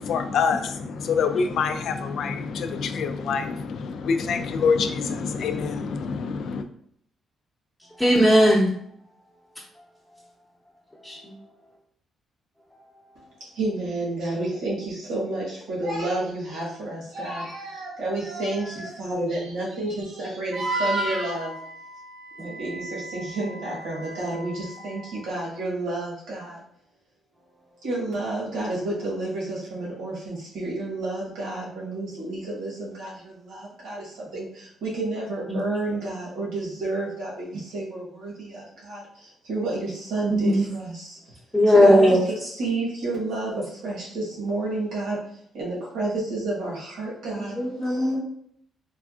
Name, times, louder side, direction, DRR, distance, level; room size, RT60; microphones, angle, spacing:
voice 1, 0.0-6.6, left 5 dB, 70° left, 8 dB, 0.3 m, -26 dB
voice 2, 8.0-8.7 11.1-11.2 40.3-40.5 41.5-42.2 47.3-48.2, equal, 5° left, -7 dB, 0.7 m, -17 dB
voice 3, 13.4-21.5 22.4-26.6 27.8-41.4 41.7-45.2 45.5-48.1, right 2 dB, 85° right, -5 dB, 1.2 m, -30 dB
Wind instrument woodwind instrument, 20.5-25.2, right 2 dB, 60° right, 0.6 m, -34 dB
3.3 x 2.4 x 2.4 m, 0.68 s
cardioid pair, 90°, 0 cm